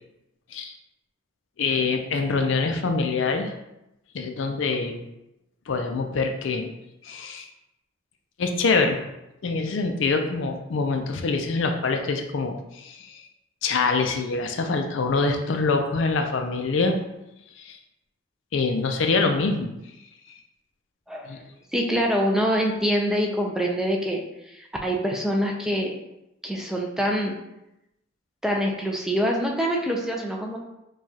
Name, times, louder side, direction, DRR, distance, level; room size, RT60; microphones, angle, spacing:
voice 1, 1.6-3.5 4.1-5.0 5.7-6.7 7.0-7.5 8.4-9.0 9.4-13.2 13.6-17.0 17.6-17.8 18.5-19.7 21.3-21.4, left 4 dB, 70° left, 5 dB, 0.4 m, -25 dB
voice 2, 21.1-21.4 21.7-25.9 26.4-27.4 28.4-30.6, equal, 5° right, -1 dB, 0.3 m, -25 dB
4.7 x 2.3 x 2.8 m, 0.89 s
head